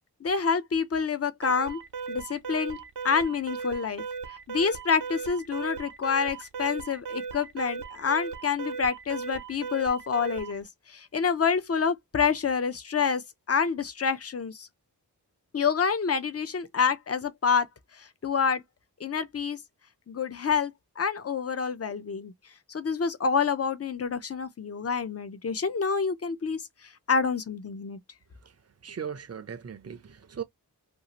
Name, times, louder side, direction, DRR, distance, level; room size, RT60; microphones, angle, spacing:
voice 1, 0.2-1.8 2.1-2.8 3.0-4.0 4.5-13.2 13.5-14.7 15.5-17.7 17.9-18.6 19.0-19.6 20.1-22.3 22.7-26.7 27.1-28.0, left 6 dB, 40° left, 0.6 m, -27 dB
Alarm, 1.4-10.6, right 5 dB, 90° right, 0.8 m, -37 dB
voice 2, 28.8-30.4, right 7 dB, 40° right, 0.6 m, -38 dB
2.6 x 2.4 x 2.9 m
wide cardioid pair, 50°, 39 cm